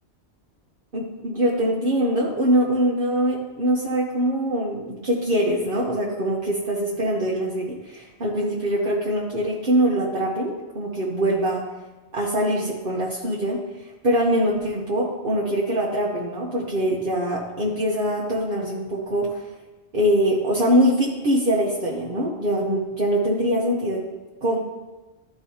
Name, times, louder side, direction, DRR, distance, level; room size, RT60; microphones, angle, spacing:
voice 1, 0.9-11.6 12.1-13.6 14.0-19.4 19.9-24.0 24.4-24.6, equal, 55° right, -5 dB, 1.2 m, -23 dB
12.5 x 4.6 x 2.8 m, 1.2 s
omnidirectional pair, 1.1 m